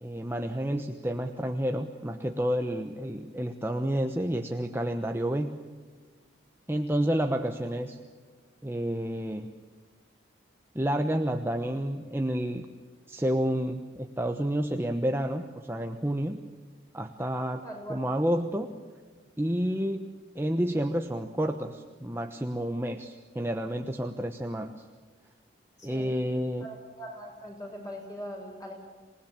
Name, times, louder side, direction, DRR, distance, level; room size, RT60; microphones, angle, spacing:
voice 1, 0.0-5.6 6.7-8.0 8.6-9.5 10.7-12.7 13.1-16.4 16.9-17.6 17.9-18.7 19.4-20.1 20.3-24.7 25.8-26.7, equal, 10° right, 5 dB, 1.0 m, -30 dB
voice 2, 17.6-18.0 25.8-26.1 26.6-28.7, equal, 20° left, 1 dB, 7.1 m, -41 dB
27.5 x 19.5 x 8.9 m, 1.4 s
head